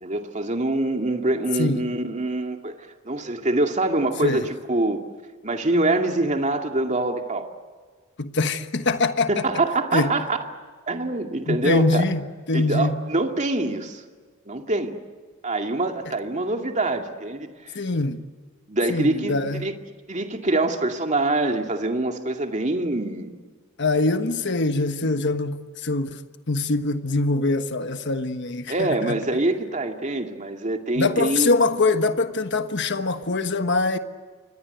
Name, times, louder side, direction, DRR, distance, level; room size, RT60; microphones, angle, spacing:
voice 1, 0.0-2.7 3.0-5.0 5.4-7.5 9.3-10.4 10.9-12.0 12.5-14.0 14.5-14.9 15.4-17.8 18.7-19.7 20.1-23.4 28.7-31.6, right 2 dB, 35° right, 2.4 m, -25 dB
voice 2, 8.2-9.4 9.9-10.1 11.5-12.2 12.5-13.0 17.7-18.2 18.9-19.7 23.8-26.2 26.5-29.2 31.0-34.0, left 3 dB, 55° left, 1.3 m, -23 dB
29.0 x 24.0 x 8.1 m
head